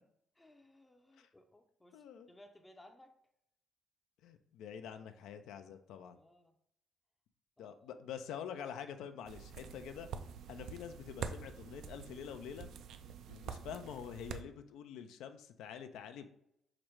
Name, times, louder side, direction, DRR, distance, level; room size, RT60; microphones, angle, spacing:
voice 1, 0.3-3.1 6.1-6.6 7.6-7.8, left 1 dB, 15° left, 5 dB, 0.5 m, -61 dB
voice 2, 1.9-2.3 4.2-6.2 7.6-10.1 10.5-12.7 13.3-16.3, left 8 dB, 85° left, 8 dB, 0.4 m, -46 dB
sound 1, 9.3-14.4, right 7 dB, 75° right, 0.3 m, -46 dB
4.9 x 2.1 x 4.5 m, 0.77 s
cardioid pair, 90°, 0 cm